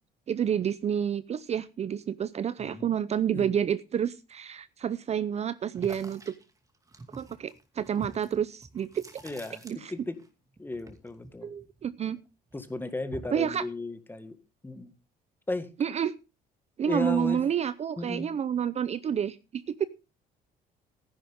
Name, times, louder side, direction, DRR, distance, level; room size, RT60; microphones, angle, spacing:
voice 1, 0.3-6.3 7.1-9.0 9.6-9.9 11.4-12.2 13.3-13.6 15.8-16.1 16.8-19.9, right 8 dB, 40° right, 15 dB, 0.6 m, -29 dB
sound 1, 5.7-10.3 10.5-12.2 12.5-13.5, right 2 dB, 20° right, 2.4 m, -47 dB
voice 2, 9.2-9.6 9.9-10.2 10.6-11.5 12.5-14.4 14.6-14.9 15.5-15.7 16.9-17.4 18.0-18.3, left 2 dB, 10° left, 10 dB, 1.8 m, -35 dB
14.0 x 10.5 x 3.6 m, 0.30 s
cardioid pair, 110°, 17 cm